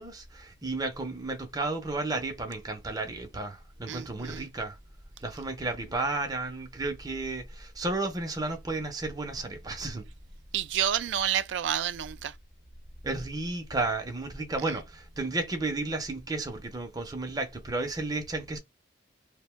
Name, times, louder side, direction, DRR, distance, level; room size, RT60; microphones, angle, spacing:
voice 1, 0.0-4.8 5.2-10.1 13.0-18.6, right 2 dB, 20° right, 0.5 m, -33 dB
voice 2, 3.9-4.4 10.5-12.3, right 10 dB, 65° right, 0.3 m, -29 dB
2.6 x 2.1 x 3.1 m
head